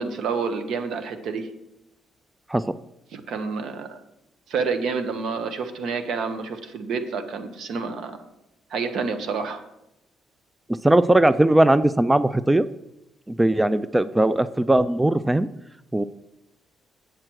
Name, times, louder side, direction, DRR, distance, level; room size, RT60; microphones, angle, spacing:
voice 1, 0.0-1.5 3.1-4.0 4.5-8.2 8.7-9.6, right 5 dB, 75° right, 8 dB, 1.1 m, -28 dB
voice 2, 10.8-12.7 13.3-15.5 15.9-16.0, right 1 dB, 10° right, 14 dB, 0.3 m, -19 dB
7.6 x 7.5 x 4.6 m, 0.87 s
cardioid pair, 90°, 0 cm